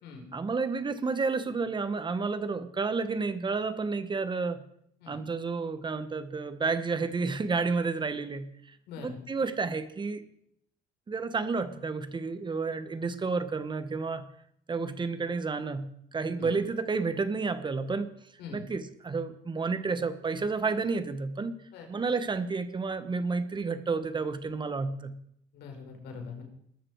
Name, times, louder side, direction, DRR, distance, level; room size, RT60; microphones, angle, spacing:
voice 1, 0.3-4.6 5.1-8.5 9.0-10.2 11.1-14.3 14.7-18.1 18.5-21.6 21.9-25.2, right 4 dB, 25° right, 11 dB, 1.6 m, -31 dB
voice 2, 25.5-26.4, left 5 dB, 80° left, 3 dB, 5.1 m, -42 dB
21.0 x 13.5 x 4.9 m, 0.69 s
cardioid pair, 110°, 17 cm